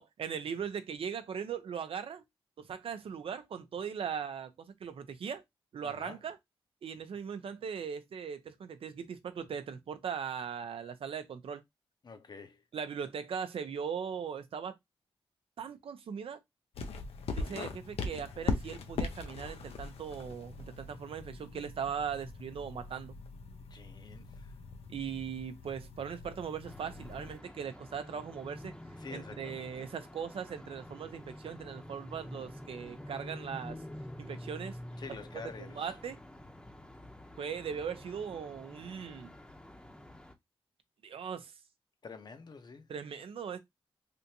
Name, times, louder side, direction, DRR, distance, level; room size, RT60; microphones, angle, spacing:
voice 1, 0.0-2.2 2.6-5.4 5.7-6.4 6.8-11.6 12.7-14.8 15.6-16.4 17.4-23.2 24.9-28.7 29.1-33.8 34.2-34.8 35.3-35.4 35.8-36.2 37.4-39.3 41.0-41.5 42.9-43.6, right 7 dB, 70° right, 0.5 m, -39 dB
voice 2, 5.8-6.2 12.0-12.6 23.7-24.6 29.0-29.8 35.0-36.0 42.0-42.9, left 5 dB, 45° left, 0.7 m, -48 dB
sound 1, 16.7-27.4, left 4 dB, 80° left, 0.6 m, -41 dB
sound 2, 26.6-40.4, left 1 dB, 10° left, 0.7 m, -48 dB
3.4 x 2.6 x 2.8 m
cardioid pair, 90°, 10 cm